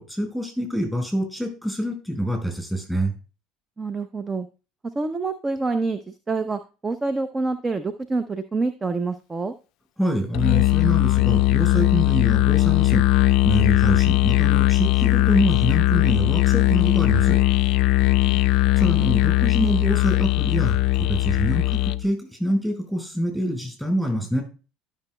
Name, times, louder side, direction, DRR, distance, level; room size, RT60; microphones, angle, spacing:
voice 1, 0.0-3.1 10.0-17.4 18.8-24.4, equal, 5° right, 2 dB, 4.9 m, -26 dB
voice 2, 3.8-4.5 4.9-9.5 18.0-18.4, right 3 dB, 25° right, 11 dB, 0.6 m, -27 dB
Musical instrument, 10.3-22.1, left 16 dB, 60° left, 0.4 m, -19 dB
12.5 x 6.1 x 2.2 m, 0.32 s
hypercardioid pair, 70°, 0 cm